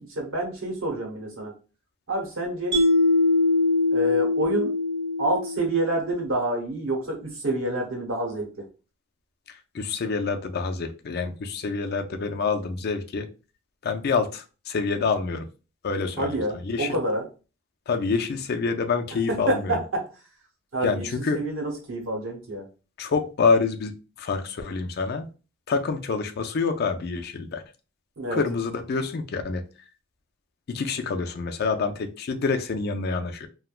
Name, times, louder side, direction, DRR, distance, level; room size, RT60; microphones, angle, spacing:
voice 1, 0.0-1.5 2.1-2.8 3.9-4.7 5.2-8.6 16.2-17.3 19.3-20.1 20.7-22.7 28.2-28.4, right 1 dB, 90° right, 0 dB, 1.0 m, -28 dB
Mallet percussion, 2.7-6.0, left 2 dB, 35° right, 1.0 m, -22 dB
voice 2, 9.7-13.3 13.8-15.5 15.8-16.4 16.6-17.0 17.9-19.7 20.8-21.4 23.0-25.3 25.7-27.6 28.3-29.6 30.7-33.5, left 4 dB, 55° left, 6 dB, 0.4 m, -27 dB
3.2 x 2.1 x 2.4 m, 0.33 s
head